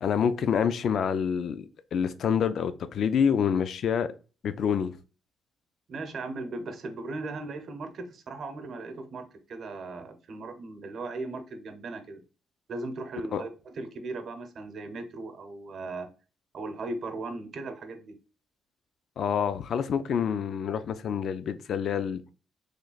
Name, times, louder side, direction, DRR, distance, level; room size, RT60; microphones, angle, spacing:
voice 1, 0.0-4.1 4.4-5.0 13.3-13.4 19.2-22.2, left 7 dB, 60° left, 0.4 m, -27 dB
voice 2, 5.9-12.2 12.7-16.1 16.5-18.2, right 3 dB, 55° right, 0.8 m, -37 dB
3.2 x 2.3 x 3.9 m
cardioid pair, 90°, 0 cm